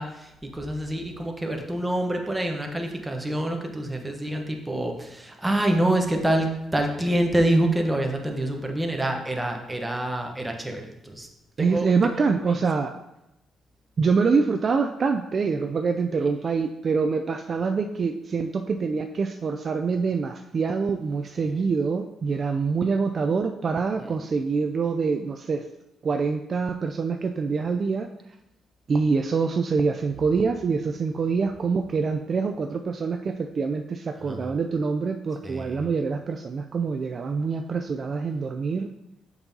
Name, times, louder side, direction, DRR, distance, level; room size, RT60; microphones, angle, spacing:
voice 1, 0.0-11.3 11.6-11.9 12.1-12.6 21.4-21.5 24.0-24.2 34.2-34.5 35.4-35.9, right 1 dB, 10° right, 3 dB, 1.0 m, -27 dB
voice 2, 11.6-12.9 14.0-25.6 26.0-28.1 28.9-38.9, right 5 dB, 45° right, 5 dB, 0.3 m, -25 dB
6.9 x 5.4 x 2.7 m, 0.89 s
cardioid pair, 90°, 0 cm